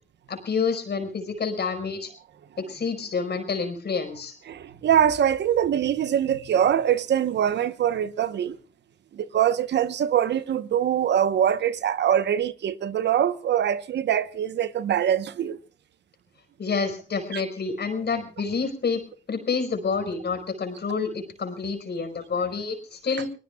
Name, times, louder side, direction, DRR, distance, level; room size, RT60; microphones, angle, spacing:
voice 1, 0.3-2.1 2.6-4.3 16.6-19.0 19.3-23.3, left 5 dB, 70° left, 4.9 m, -28 dB
voice 2, 4.5-8.6 9.1-15.6 17.3-17.4, right 9 dB, 90° right, 1.0 m, -23 dB
29.0 x 19.5 x 2.3 m
cardioid pair, 50°, 18 cm